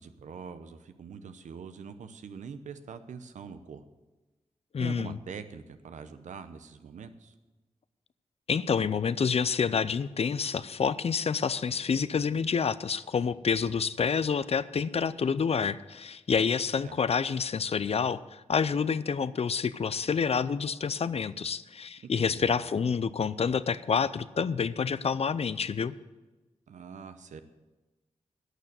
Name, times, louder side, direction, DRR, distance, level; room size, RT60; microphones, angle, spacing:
voice 1, 0.0-3.8 4.8-7.3 16.8-17.0 22.1-22.6 26.7-27.4, right 6 dB, 90° right, 10 dB, 0.8 m, -43 dB
voice 2, 4.7-5.2 8.5-25.9, left 6 dB, 55° left, 16 dB, 0.5 m, -28 dB
11.5 x 6.8 x 8.0 m, 1.1 s
cardioid pair, 55°, 12 cm